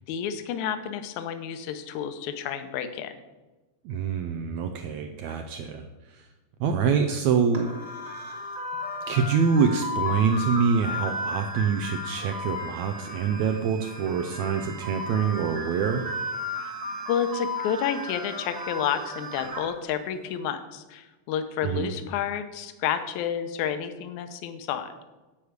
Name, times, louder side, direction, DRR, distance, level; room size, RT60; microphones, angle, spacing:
voice 1, 0.1-3.1 16.6-16.7 17.1-25.1, left 8 dB, 75° left, 9 dB, 2.0 m, -30 dB
voice 2, 3.8-5.8 6.1-6.3 6.6-7.7 9.1-16.1 21.6-21.9, right 6 dB, 90° right, 5 dB, 1.6 m, -25 dB
sound 1, 7.5-19.7, left 1 dB, 55° right, 0.7 m, -34 dB
10.0 x 4.9 x 8.0 m, 1.1 s
omnidirectional pair, 3.9 m